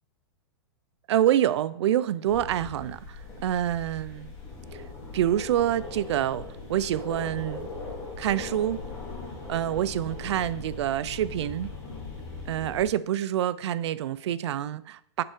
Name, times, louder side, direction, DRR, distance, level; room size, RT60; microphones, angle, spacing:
voice 1, 1.1-4.3 4.7-4.8 5.1-7.7 8.2-8.8 9.5-11.7 12.5-15.2, right 11 dB, 80° right, 0.4 m, -27 dB
sound 1, 2.2-12.9, left 3 dB, 20° left, 1.7 m, -39 dB
6.7 x 4.5 x 3.7 m
supercardioid pair, 165°, 14 cm